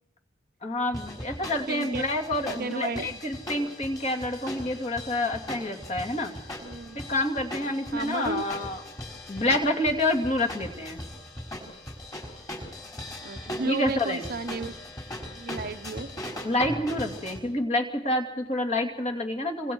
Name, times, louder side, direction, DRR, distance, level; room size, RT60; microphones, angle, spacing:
voice 1, 0.6-6.3 6.9-8.8 9.3-11.0 13.6-14.3 16.4-19.7, left 1 dB, 35° left, 2 dB, 2.8 m, -28 dB
sound 1, 0.9-17.4, left 1 dB, 20° left, 5.2 m, -39 dB
voice 2, 1.7-2.0 2.4-3.2 6.6-7.0 7.9-8.4 13.2-14.7 15.3-16.1, right 3 dB, 50° right, 9 dB, 0.8 m, -33 dB
29.5 x 26.0 x 4.7 m, 0.94 s
head